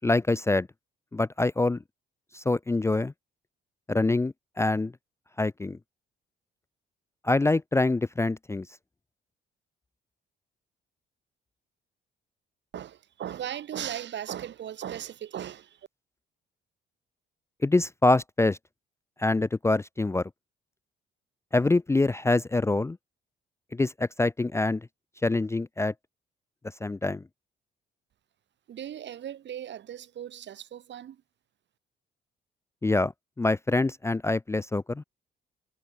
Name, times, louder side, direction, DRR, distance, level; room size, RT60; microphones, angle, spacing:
voice 1, 0.0-0.7 1.1-1.8 2.3-3.1 3.9-4.9 5.4-5.8 7.2-8.7 17.6-18.6 19.2-20.3 21.5-23.0 23.7-24.9 25.2-25.9 26.8-27.2 32.8-33.1 33.4-35.0, left 2 dB, 15° left, 0.5 m, -25 dB
voice 2, 12.7-15.9 28.7-31.2, right 10 dB, 65° right, 2.5 m, -37 dB
cardioid pair, 90°, 20 cm